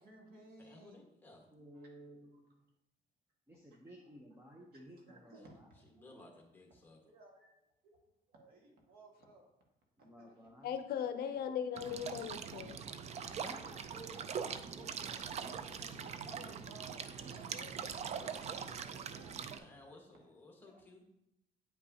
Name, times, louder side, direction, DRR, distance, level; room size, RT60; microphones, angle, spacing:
voice 1, 0.0-1.0 1.7-1.9 3.7-4.1 4.4-6.1 7.0-7.5 7.8-8.0 8.3-9.5 10.0-10.5 15.7-15.8 16.3-19.5 19.8-20.3 20.7-20.9, right 2 dB, 65° right, 0 dB, 1.8 m, -58 dB
voice 2, 0.6-1.5 5.9-7.0 19.5-21.1, left 2 dB, 10° left, 0 dB, 1.5 m, -58 dB
voice 3, 1.5-2.5 3.5-5.7 10.0-10.7 13.1-16.7 17.0-17.6, right 1 dB, 15° right, 0 dB, 0.8 m, -55 dB
voice 4, 10.6-12.8, left 8 dB, 65° left, 8 dB, 0.6 m, -38 dB
sound 1, 11.8-19.6, right 7 dB, 40° right, 0.4 m, -42 dB
9.1 x 5.3 x 2.8 m, 0.85 s
cardioid pair, 110°, 17 cm